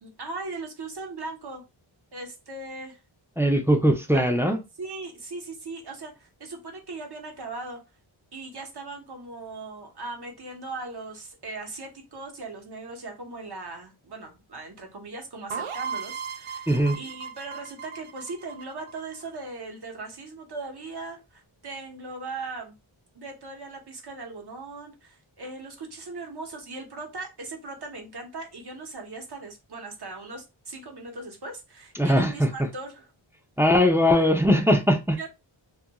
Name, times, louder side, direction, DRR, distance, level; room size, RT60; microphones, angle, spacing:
voice 1, 0.0-1.6 2.1-3.0 4.1-4.3 4.8-7.8 8.3-22.7 23.1-33.0 34.2-34.3 35.2-35.3, right 3 dB, 50° right, 0.9 m, -39 dB
voice 2, 3.4-4.6 16.7-17.0 32.0-32.7 33.6-35.3, equal, 5° right, 0.3 m, -21 dB
sound 1, 15.5-19.2, right 6 dB, 80° right, 0.6 m, -36 dB
2.4 x 2.2 x 2.8 m
wide cardioid pair, 90°, 49 cm